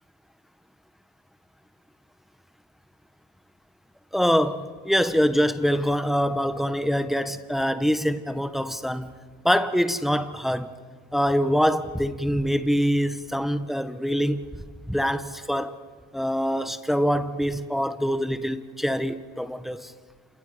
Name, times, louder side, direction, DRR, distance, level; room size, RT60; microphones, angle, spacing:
voice 1, 4.1-9.1 9.4-10.8 11.1-14.4 14.9-15.8 16.1-19.9, equal, ahead, 1.6 m, -24 dB
29.0 x 27.0 x 5.3 m
supercardioid pair, 60°, 35 cm